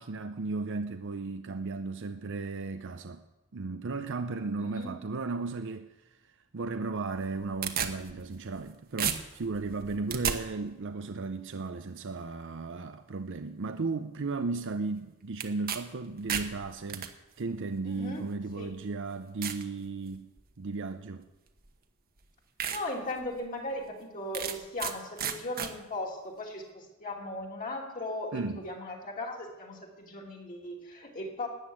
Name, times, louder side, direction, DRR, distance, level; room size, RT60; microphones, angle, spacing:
voice 1, 0.0-3.2 3.5-5.9 6.5-17.1 17.4-20.3 20.6-21.3 28.3-28.6, right 3 dB, 60° right, 8 dB, 0.6 m, -35 dB
voice 2, 4.6-5.0 17.9-18.7 22.7-31.5, left 1 dB, 40° left, 0 dB, 2.8 m, -38 dB
sound 1, 7.1-8.7 9.0-10.4 15.4-15.8 16.1-17.1 18.0-18.1 18.7-18.8 19.4-19.6 20.1-20.5 21.6-21.7 22.2-22.3 22.6-22.8 23.2-23.3 24.3-24.9 25.2-25.7, right 8 dB, 45° right, 1.1 m, -33 dB
13.0 x 9.6 x 8.7 m, 1.1 s
head